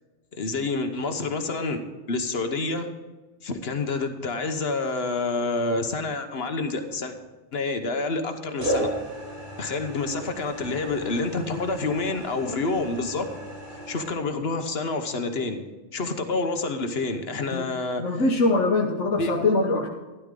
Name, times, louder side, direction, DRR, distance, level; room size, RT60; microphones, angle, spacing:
voice 1, 0.3-1.8 2.1-2.9 3.4-7.1 7.5-8.9 9.6-13.3 13.9-15.6 15.9-18.0 19.2-19.6, left 3 dB, 60° left, 7 dB, 1.2 m, -28 dB
sound 1, 6.6-7.3 8.6-14.1, right 1 dB, 60° right, 3.5 m, -34 dB
voice 2, 18.0-19.9, left 3 dB, 90° left, 1 dB, 1.4 m, -23 dB
12.5 x 11.5 x 3.7 m, 1.2 s
omnidirectional pair, 1.2 m